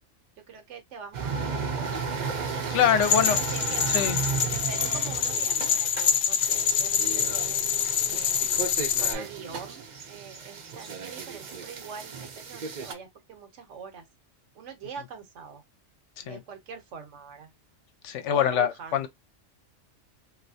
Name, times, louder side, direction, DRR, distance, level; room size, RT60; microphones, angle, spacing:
voice 1, 0.5-2.1 3.1-7.6 8.1-8.7 9.0-14.1 14.5-15.6 16.2-17.5 18.2-19.1, right 6 dB, 75° right, 1.1 m, -44 dB
sound 1, 1.1-12.9, right 5 dB, 50° right, 0.6 m, -34 dB
voice 2, 2.7-3.4 3.9-4.2 16.3-16.4 18.0-19.1, left 9 dB, 80° left, 0.9 m, -24 dB
sound 2, 3.0-9.1, left 7 dB, 60° left, 0.7 m, -26 dB
3.1 x 2.6 x 2.6 m
omnidirectional pair, 1.3 m